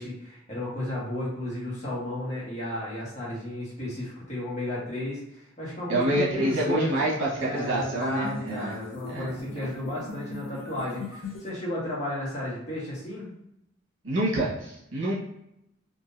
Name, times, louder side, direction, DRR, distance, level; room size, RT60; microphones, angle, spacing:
voice 1, 0.0-6.9 7.4-13.3, left 1 dB, 35° left, -7 dB, 1.3 m, -33 dB
sound 1, 5.9-11.5, left 2 dB, 75° left, 0.9 m, -40 dB
voice 2, 5.9-8.8 9.1-9.7 14.0-15.1, right 1 dB, 80° right, -6 dB, 1.3 m, -27 dB
3.8 x 2.6 x 2.6 m, 0.82 s
head